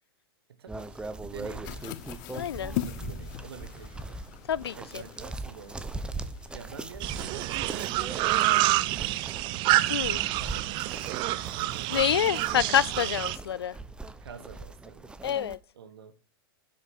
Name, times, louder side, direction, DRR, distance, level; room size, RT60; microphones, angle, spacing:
voice 1, 0.5-1.9 2.7-4.2 4.7-6.0 6.5-7.8 8.2-9.6 10.1-12.1 14.2-15.2 15.7-16.1, right 7 dB, 70° right, 1.4 m, -48 dB
sound 1, 0.7-15.6, right 2 dB, 5° right, 0.9 m, -41 dB
sound 2, 1.6-8.1, left 14 dB, 50° left, 1.0 m, -41 dB
voice 2, 2.3-2.8 4.5-5.0 9.9-10.2 11.9-13.8 15.2-15.6, left 9 dB, 75° left, 0.5 m, -27 dB
sound 3, 7.0-13.4, right 16 dB, 35° right, 0.6 m, -27 dB
10.5 x 8.0 x 4.6 m
hypercardioid pair, 105°, 13 cm